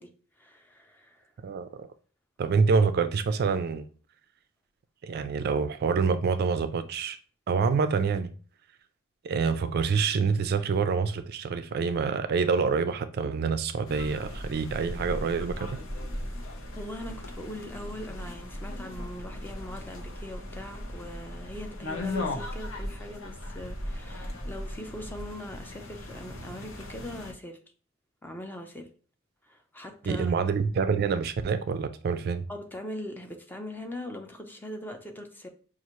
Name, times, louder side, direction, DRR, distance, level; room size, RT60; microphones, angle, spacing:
voice 1, 0.0-1.3 16.7-27.6 28.2-28.9 29.4-30.4 32.5-35.5, left 1 dB, 10° left, 0.5 m, -41 dB
voice 2, 1.4-1.9 2.4-3.9 5.0-7.2 7.5-8.3 9.2-15.7 30.0-32.5, right 5 dB, 50° right, 0.3 m, -26 dB
sound 1, 13.8-27.3, left 1 dB, 85° left, 0.8 m, -37 dB
5.6 x 2.4 x 3.0 m
head